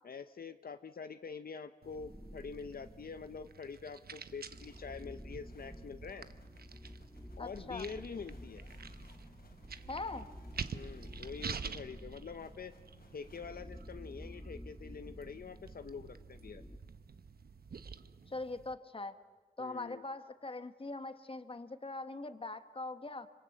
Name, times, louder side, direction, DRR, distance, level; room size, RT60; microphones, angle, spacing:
voice 1, 0.0-6.3 7.4-8.6 10.7-12.7 13.1-16.6 19.6-20.0, left 5 dB, 70° left, 10 dB, 0.8 m, -46 dB
sound 1, 1.8-18.7, right 6 dB, 80° right, 0.9 m, -49 dB
sound 2, 1.9-3.6 4.2-16.8, equal, ahead, 1.0 m, -51 dB
sound 3, 4.5-13.4, left 2 dB, 90° left, 4.4 m, -63 dB
voice 2, 7.4-7.9 9.9-10.3 18.3-19.2 19.6-23.3, left 2 dB, 35° left, 10 dB, 1.3 m, -42 dB
26.0 x 25.5 x 8.0 m, 1.3 s
wide cardioid pair, 90°, 16 cm